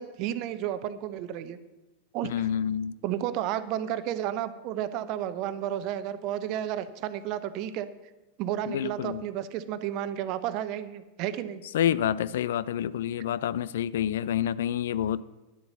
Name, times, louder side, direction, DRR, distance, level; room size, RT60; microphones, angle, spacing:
voice 1, 0.0-1.6 2.1-2.5 3.0-7.9 8.4-11.6, right 11 dB, 40° right, 0.7 m, -32 dB
voice 2, 2.2-3.0 8.7-9.3 11.7-15.2, left 10 dB, 60° left, 0.3 m, -28 dB
11.0 x 8.0 x 6.6 m
figure-of-eight pair, 90°, 0 cm